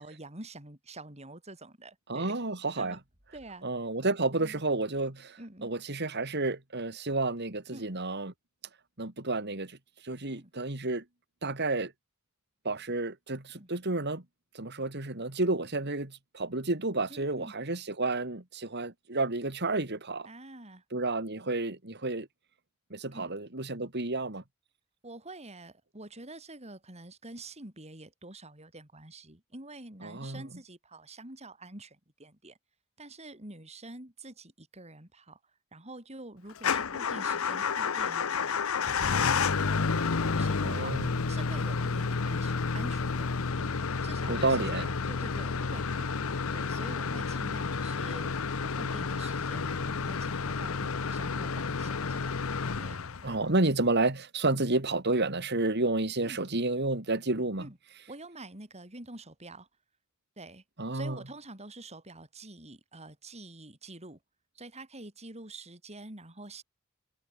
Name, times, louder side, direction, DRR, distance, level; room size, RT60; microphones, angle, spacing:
voice 1, 0.0-2.3 2.8-3.0 3.3-3.7 4.4-4.6 5.4-5.7 7.7-7.9 10.3-10.5 13.6-13.7 17.1-17.5 20.2-20.8 23.1-23.4 25.0-32.6 33.0-35.4 35.7-38.7 39.2-48.4 48.6-52.4 52.8-53.0 56.2-56.4 57.6-57.8 58.1-59.7 60.4-60.6 60.9-64.2 64.5-66.6, right 2 dB, 30° right, 6.5 m, -47 dB
voice 2, 2.1-3.0 3.6-8.3 9.0-9.8 10.0-11.0 11.4-11.9 12.6-14.2 14.5-20.3 20.9-22.3 22.9-24.4 30.0-30.5 40.6-41.1 44.3-44.9 53.2-57.7 60.8-61.2, right 2 dB, 55° right, 2.9 m, -30 dB
Motor vehicle (road) / Engine starting / Idling, 36.6-53.5, left 5 dB, 75° left, 0.9 m, -30 dB
head